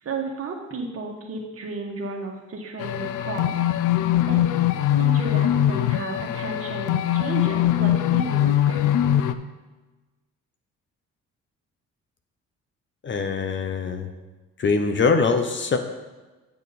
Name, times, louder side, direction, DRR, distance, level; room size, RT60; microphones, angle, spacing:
voice 1, 0.0-3.6 4.3-4.7 5.0-8.9, right 3 dB, 50° right, 1 dB, 1.6 m, -33 dB
sound 1, 2.8-9.3, left 12 dB, 85° left, 0.5 m, -22 dB
voice 2, 13.0-14.1 14.6-15.8, left 4 dB, 40° left, 7 dB, 0.8 m, -23 dB
8.9 x 6.3 x 4.2 m, 1.2 s
cardioid pair, 90°, 30 cm